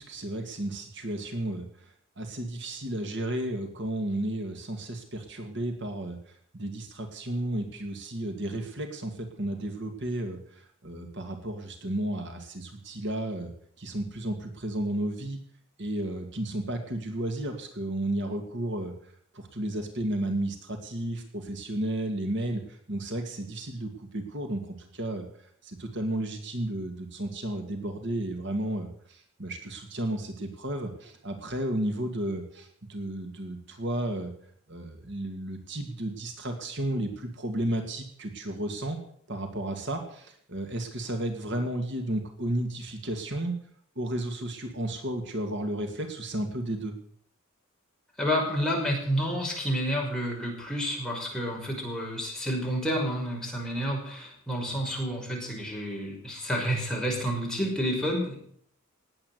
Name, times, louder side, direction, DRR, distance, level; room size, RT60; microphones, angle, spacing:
voice 1, 0.0-1.7 2.2-6.2 6.5-15.4 15.8-18.9 19.3-25.3 25.6-34.3 34.7-39.0 39.3-43.5 44.0-46.9, right 1 dB, 60° right, 5 dB, 2.3 m, -33 dB
voice 2, 48.2-58.4, equal, 5° left, -2 dB, 5.6 m, -29 dB
19.0 x 8.8 x 8.1 m, 0.62 s
head